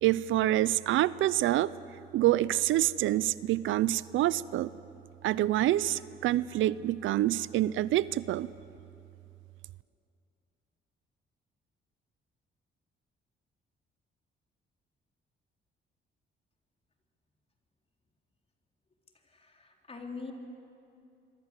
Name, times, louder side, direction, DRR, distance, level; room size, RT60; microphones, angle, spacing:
voice 1, 0.0-1.7 2.1-4.7 5.2-8.5, right 14 dB, 80° right, 18 dB, 0.6 m, -27 dB
voice 2, 19.2-20.3, left 4 dB, 30° left, 2 dB, 3.7 m, -43 dB
27.0 x 22.5 x 8.3 m, 2.6 s
cardioid pair, 90°, 20 cm